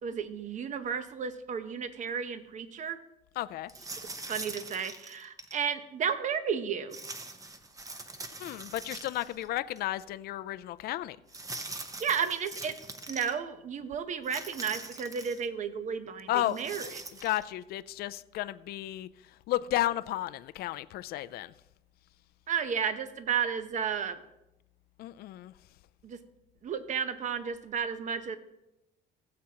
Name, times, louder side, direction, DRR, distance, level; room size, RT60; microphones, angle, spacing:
voice 1, 0.0-3.0 4.3-7.0 12.0-12.8 13.1-17.0 22.5-24.2 26.0-26.2 26.6-28.4, right 7 dB, 45° right, 0.9 m, -33 dB
voice 2, 3.4-3.7 8.4-11.2 16.3-16.6 17.2-19.1 19.5-21.5 25.0-25.5, left 15 dB, 65° left, 0.4 m, -33 dB
sound 1, 3.7-5.6 6.9-9.5 9.8-9.9 11.3-13.3 14.2-15.5 16.4-17.4, right 2 dB, 20° right, 0.8 m, -43 dB
16.5 x 7.6 x 2.9 m
cardioid pair, 110°, 17 cm